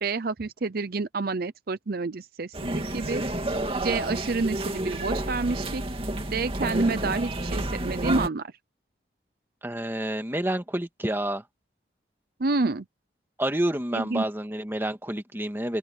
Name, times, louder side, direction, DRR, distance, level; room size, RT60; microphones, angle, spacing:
voice 1, 0.0-3.2 3.8-5.8 6.3-8.5 12.4-12.8 13.9-14.2, right 3 dB, 55° right, 0.6 m, -28 dB
sound 1, 2.5-8.3, right 1 dB, 30° right, 2.4 m, -30 dB
voice 2, 9.6-11.4 13.4-15.8, right 1 dB, 10° right, 1.8 m, -29 dB
open air
head